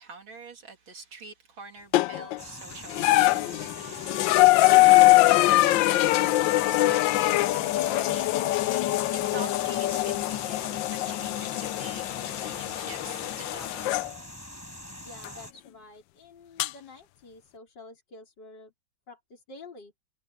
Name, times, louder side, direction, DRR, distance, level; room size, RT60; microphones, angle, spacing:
voice 1, 0.0-6.4 6.6-13.9, right 5 dB, 80° right, 3.2 m, -46 dB
sound 1, 1.9-2.4 2.9-14.1 15.2-15.3 16.6-16.7, left 18 dB, 75° left, 1.2 m, -23 dB
sound 2, 2.4-15.5, left 1 dB, 5° left, 5.5 m, -43 dB
voice 2, 15.0-18.7 19.1-19.9, left 3 dB, 60° left, 5.1 m, -49 dB
omnidirectional pair, 2.2 m